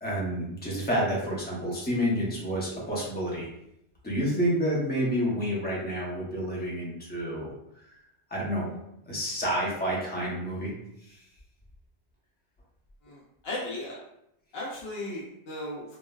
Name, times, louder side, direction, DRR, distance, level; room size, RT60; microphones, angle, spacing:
voice 1, 0.0-3.5 4.0-7.8 8.3-8.7 9.1-10.7 11.1-11.2, equal, 10° left, -5 dB, 0.5 m, -29 dB
voice 2, 13.0-14.0 14.5-16.0, left 1 dB, 70° left, -4 dB, 0.8 m, -36 dB
3.8 x 2.0 x 2.2 m, 0.80 s
omnidirectional pair, 1.1 m